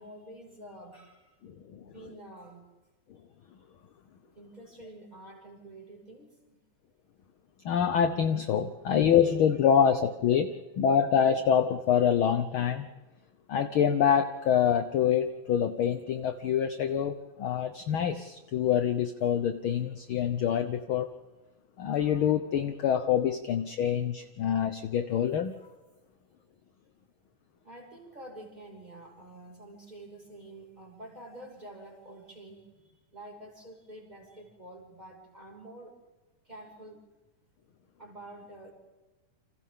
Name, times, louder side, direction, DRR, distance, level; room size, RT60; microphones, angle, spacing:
voice 1, 0.0-1.4 1.8-2.7 4.2-6.6 9.2-9.3 9.6-9.7 27.6-36.0 36.4-37.0 38.0-38.7, right 1 dB, 15° right, 0 dB, 5.7 m, -48 dB
voice 2, 1.4-1.8 7.6-12.9 13.5-21.1 21.8-25.5, left 8 dB, 65° left, 9 dB, 1.3 m, -26 dB
29.5 x 27.0 x 3.7 m, 1.2 s
omnidirectional pair, 3.4 m